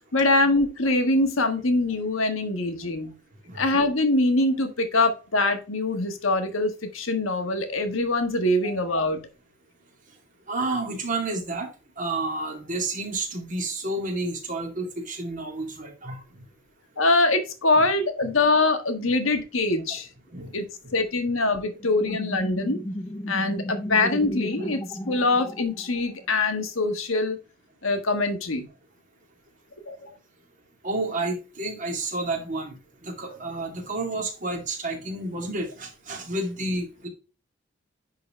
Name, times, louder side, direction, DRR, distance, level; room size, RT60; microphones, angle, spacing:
voice 1, 0.1-3.1 3.5-9.2 17.0-20.1 20.5-20.6 20.9-22.8 23.3-27.4 27.8-28.7 29.9-30.1, left 2 dB, 85° left, 7 dB, 1.4 m, -23 dB
voice 2, 10.5-11.7 12.0-16.2 20.3-20.5 30.8-32.8 33.0-37.1, right 2 dB, 40° right, 1 dB, 2.4 m, -30 dB
sound 1, 21.8-26.3, equal, 15° left, 0.5 m, -33 dB
10.0 x 4.0 x 3.2 m, 0.32 s
head